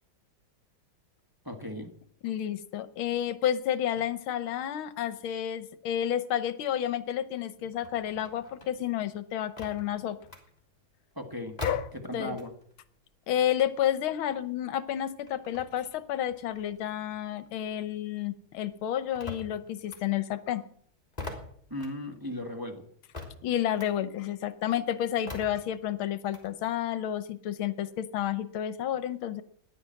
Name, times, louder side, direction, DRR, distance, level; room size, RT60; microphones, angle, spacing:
voice 1, 1.4-1.9 11.1-11.6 11.9-12.5 21.7-22.8, left 1 dB, 10° right, 3 dB, 1.5 m, -36 dB
voice 2, 2.2-10.2 11.6-11.9 12.1-12.4 13.3-20.6 23.4-29.4, left 10 dB, 80° left, 14 dB, 1.7 m, -30 dB
sound 1, 7.7-12.8 13.1-18.0 18.3-26.5, left 3 dB, 20° left, 3.2 m, -45 dB
14.5 x 11.0 x 7.6 m, 0.62 s
omnidirectional pair, 2.3 m